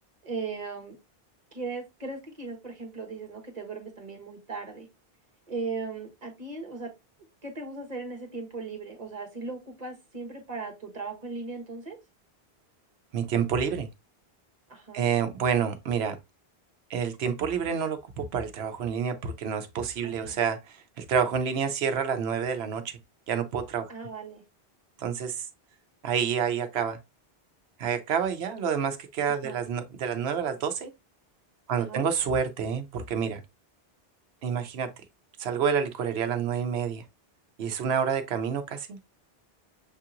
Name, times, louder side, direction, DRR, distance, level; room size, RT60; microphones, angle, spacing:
voice 1, 0.2-1.0 1.5-4.9 5.5-6.9 7.4-12.0 14.7-15.1 20.0-20.3 23.9-24.4 29.3-29.6 31.8-32.1, right 4 dB, 40° right, 1.3 m, -37 dB
voice 2, 13.1-13.9 14.9-16.2 16.9-23.0 23.3-23.9 25.0-25.5 26.0-27.0 27.8-30.9 31.7-33.4 34.4-34.9 35.4-37.0 37.6-39.0, right 7 dB, 85° right, 0.9 m, -28 dB
6.6 x 2.8 x 2.5 m
omnidirectional pair, 1.0 m